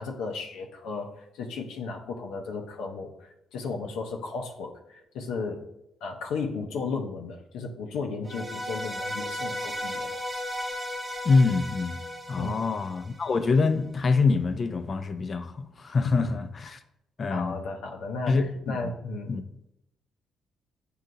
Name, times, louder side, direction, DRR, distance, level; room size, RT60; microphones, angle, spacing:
voice 1, 0.0-5.7 6.0-10.2 12.4-12.7 16.0-16.3 16.6-16.8 17.3-18.4 18.6-19.4, left 4 dB, 85° left, 0.6 m, -34 dB
sound 1, 8.3-13.5, left 1 dB, 20° right, 0.6 m, -35 dB
voice 2, 11.2-12.0 12.3-16.8 17.2-17.6 18.3-18.8 19.3-19.4, left 4 dB, 40° left, 0.5 m, -25 dB
7.5 x 2.8 x 2.5 m
cardioid pair, 90°, 0 cm